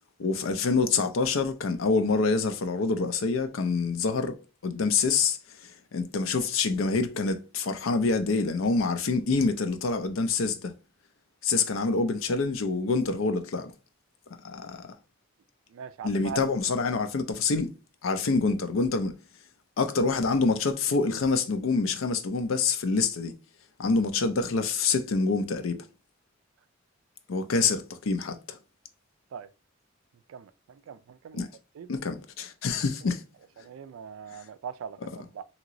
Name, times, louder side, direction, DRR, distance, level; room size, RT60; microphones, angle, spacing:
voice 1, 0.2-4.4 4.6-5.4 5.6-10.7 11.4-13.7 14.4-14.9 16.0-17.7 18.0-19.2 19.8-23.3 23.8-25.8 27.3-28.6 31.3-31.5 31.9-33.2, left 4 dB, 75° left, 0.5 m, -26 dB
voice 2, 15.7-16.4 29.3-29.5 30.3-31.4 31.7-31.9 33.6-35.4, right 7 dB, 80° right, 0.3 m, -41 dB
2.9 x 2.9 x 2.5 m
head